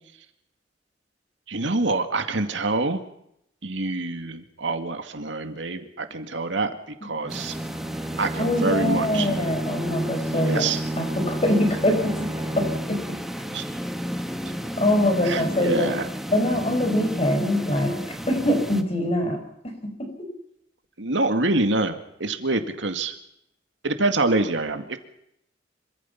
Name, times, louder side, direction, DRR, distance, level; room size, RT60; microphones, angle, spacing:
voice 1, 1.5-3.0 3.6-7.6 8.2-9.3 10.3-10.8 13.5-13.6 15.2-16.1 21.0-23.1 23.8-25.0, right 2 dB, 85° right, 7 dB, 2.2 m, -26 dB
Bowed string instrument, 7.2-13.2, right 1 dB, 20° right, 1.3 m, -31 dB
sound 1, 7.3-18.8, equal, ahead, 1.5 m, -33 dB
voice 2, 8.4-10.7 11.0-12.3 12.6-13.2 14.8-16.0 16.3-19.4 19.8-20.1, left 1 dB, 35° left, 4 dB, 6.4 m, -24 dB
26.5 x 24.5 x 5.9 m, 0.78 s
head